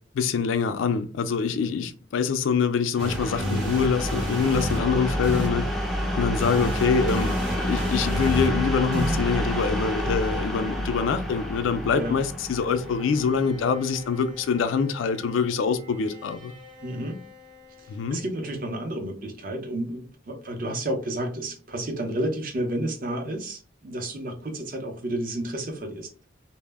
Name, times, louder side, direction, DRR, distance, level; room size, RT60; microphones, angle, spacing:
voice 1, 0.1-5.7 6.2-7.3 7.7-16.5 17.9-18.2, left 5 dB, 80° left, 0.3 m, -25 dB
sound 1, 2.9-14.6, equal, ahead, 0.3 m, -29 dB
sound 2, 3.0-10.9, equal, 80° right, 0.7 m, -33 dB
Bowed string instrument, 12.8-18.9, left 4 dB, 25° right, 0.9 m, -48 dB
voice 2, 16.8-17.2 18.1-26.3, right 1 dB, 45° right, 0.5 m, -31 dB
2.0 x 2.0 x 3.3 m
head